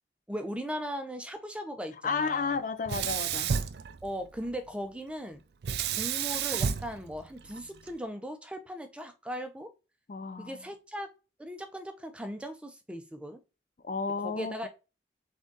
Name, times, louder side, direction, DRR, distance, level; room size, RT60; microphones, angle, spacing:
voice 1, 0.3-2.6 4.0-5.4 6.0-9.7 10.4-11.1 11.4-13.4 14.2-14.7, equal, 5° right, 0.5 m, -38 dB
voice 2, 2.0-3.5 10.1-10.6 13.8-14.7, left 4 dB, 45° left, 0.4 m, -32 dB
Sink (filling or washing), 2.9-4.5 5.6-7.9, right 7 dB, 65° right, 0.4 m, -31 dB
3.9 x 3.5 x 3.8 m
head